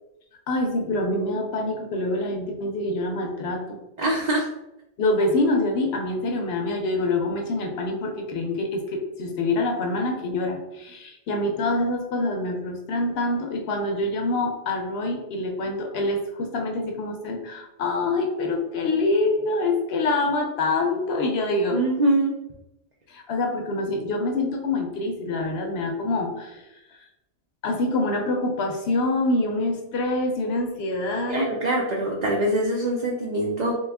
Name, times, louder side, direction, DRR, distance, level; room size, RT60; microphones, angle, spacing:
voice 1, 0.5-3.8 5.0-21.8 23.1-26.6 27.6-31.5, left 2 dB, 60° left, 2 dB, 0.8 m, -25 dB
voice 2, 4.0-4.5 21.7-22.3 31.3-33.7, right 1 dB, 60° right, -2 dB, 0.4 m, -23 dB
3.1 x 2.3 x 3.3 m, 0.88 s
omnidirectional pair, 1.3 m